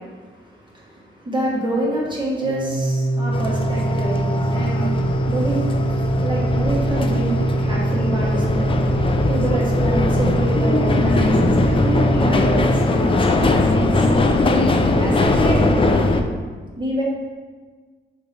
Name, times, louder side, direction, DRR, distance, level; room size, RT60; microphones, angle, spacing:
voice 1, 0.0-9.0 9.3-14.1 14.9-15.7 16.7-17.0, right 1 dB, 25° right, -5 dB, 1.2 m, -27 dB
Organ, 2.4-13.3, right 2 dB, 80° left, 0.9 m, -23 dB
sound 1, 3.3-16.2, left 2 dB, 25° left, 0.4 m, -20 dB
6.4 x 3.3 x 5.1 m, 1.4 s
wide cardioid pair, 155°, 20 cm